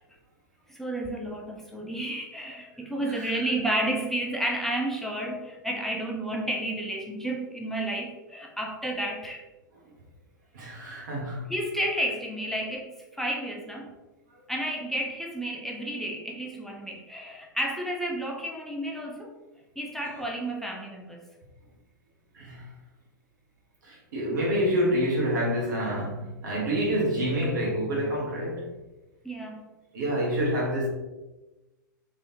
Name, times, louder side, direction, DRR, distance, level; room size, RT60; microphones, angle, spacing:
voice 1, 0.7-9.4 11.5-13.9 14.5-19.3 19.8-21.2 29.2-29.7, right 1 dB, 5° left, 0 dB, 0.5 m, -31 dB
voice 2, 10.5-11.4 22.3-22.7 23.8-28.7 29.9-30.9, equal, 65° right, -2 dB, 1.5 m, -27 dB
3.7 x 3.5 x 2.9 m, 1.1 s
figure-of-eight pair, 100°, 11 cm